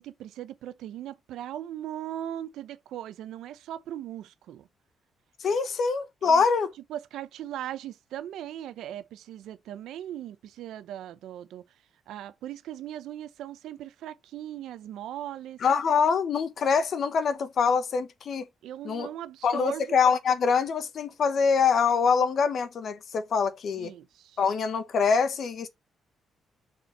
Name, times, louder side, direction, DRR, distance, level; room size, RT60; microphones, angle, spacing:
voice 1, 0.0-4.7 5.5-5.6 6.2-6.5 6.9-11.6 12.1-15.6 18.6-20.0 23.7-24.4, right 11 dB, 80° right, 0.8 m, -39 dB
voice 2, 5.4-6.7 15.6-18.5 18.8-19.1 19.4-23.9 24.4-25.7, left 5 dB, 40° left, 1.1 m, -24 dB
6.8 x 4.6 x 4.3 m
cardioid pair, 180°, 0 cm